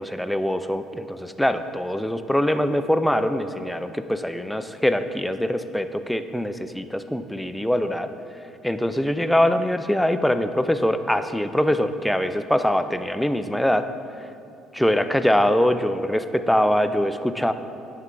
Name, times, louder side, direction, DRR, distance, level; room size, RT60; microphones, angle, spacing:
voice 1, 0.0-8.1 8.6-13.9 14.7-17.5, equal, 5° left, 10 dB, 0.4 m, -23 dB
9.1 x 5.5 x 3.8 m, 2.7 s
hypercardioid pair, 65°, 0 cm